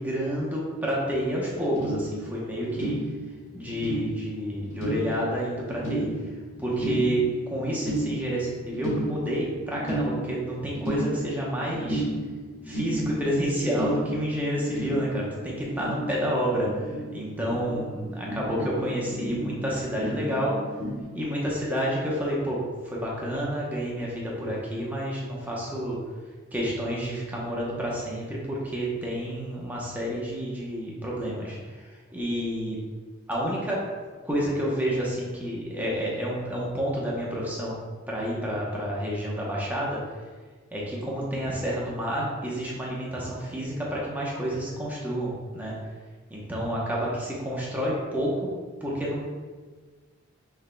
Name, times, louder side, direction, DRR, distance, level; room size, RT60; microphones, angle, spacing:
voice 1, 0.0-2.9 3.5-6.1 6.6-12.0 12.6-16.7 17.1-20.5 21.1-22.6 22.8-26.0 26.5-31.9 32.1-32.8 33.3-33.8 34.2-37.7 38.1-40.0 40.7-45.8 46.3-48.5 48.8-49.3, equal, 10° right, -5 dB, 0.8 m, -29 dB
sound 1, 1.5-21.0, right 1 dB, 65° left, 1.4 m, -34 dB
6.3 x 3.4 x 2.2 m, 1.4 s
head